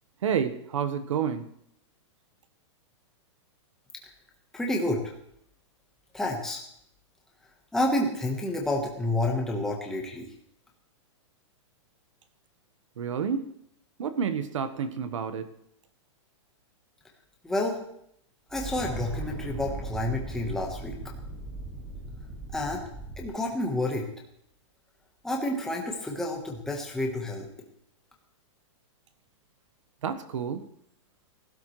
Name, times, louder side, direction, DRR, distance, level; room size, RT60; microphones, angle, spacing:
voice 1, 0.2-1.5 13.0-13.5 14.0-15.5 30.0-30.7, right 7 dB, 80° right, 10 dB, 1.3 m, -29 dB
voice 2, 4.5-5.1 6.1-6.6 7.7-10.3 17.4-17.8 18.5-21.0 22.5-22.8 23.2-24.1 25.2-27.5, left 1 dB, 5° left, -1 dB, 1.2 m, -29 dB
sound 1, 18.5-23.3, right 2 dB, 20° right, 5.0 m, -38 dB
19.0 x 12.5 x 3.2 m, 0.73 s
supercardioid pair, 175°, 16 cm